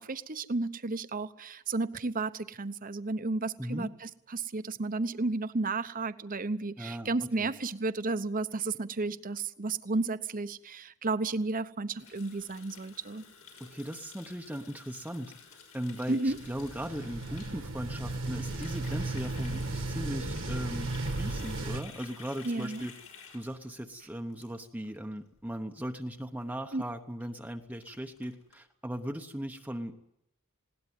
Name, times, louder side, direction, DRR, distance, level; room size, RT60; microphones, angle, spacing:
voice 1, 0.0-13.2 16.1-16.4 22.4-22.8 26.7-26.8, right 3 dB, 40° right, 13 dB, 0.9 m, -33 dB
voice 2, 3.6-3.9 6.8-7.1 7.4-7.5 13.6-15.3 15.7-22.9 23.3-30.1, equal, 5° right, 4 dB, 0.9 m, -38 dB
Water tap faucet, 12.0-25.0 25.3-25.5 25.8-26.1 26.4-26.5 26.7-26.8 27.2-27.3 27.5-28.6, left 6 dB, 90° left, 6.5 m, -52 dB
sound 1, 16.3-21.8, right 2 dB, 60° right, 1.6 m, -35 dB
20.5 x 18.0 x 9.3 m, 0.79 s
head